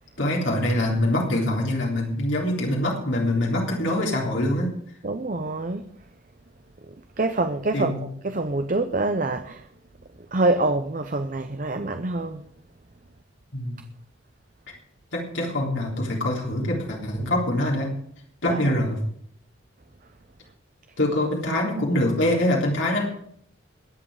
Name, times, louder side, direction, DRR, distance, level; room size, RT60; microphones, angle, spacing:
voice 1, 0.2-4.7 7.7-8.0 13.5-13.8 15.1-17.9 18.4-19.0 21.0-23.1, left 1 dB, 80° left, 3.6 m, -24 dB
voice 2, 5.0-5.9 7.2-9.7 10.3-12.4 18.5-18.6, right 2 dB, 45° right, 0.8 m, -26 dB
21.5 x 7.7 x 4.9 m
head